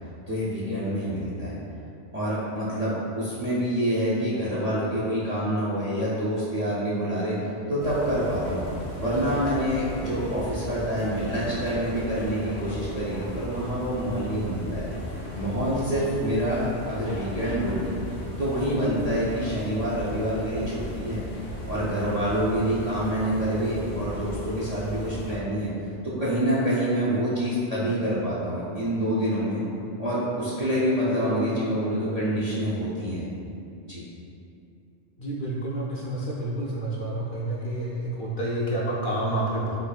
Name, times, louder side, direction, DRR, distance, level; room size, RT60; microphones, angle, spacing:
voice 1, 0.3-1.6 2.1-8.7 9.0-14.8 15.3-17.9 18.4-21.2 21.7-25.7 26.0-29.6 30.0-33.2 33.8-34.0, equal, 50° right, -8 dB, 0.5 m, -27 dB
sound 1, 7.8-25.4, left 1 dB, 75° left, 1.0 m, -36 dB
voice 2, 35.2-39.8, right 1 dB, 60° left, -5 dB, 0.6 m, -29 dB
3.4 x 3.3 x 2.3 m, 2.7 s
omnidirectional pair, 1.1 m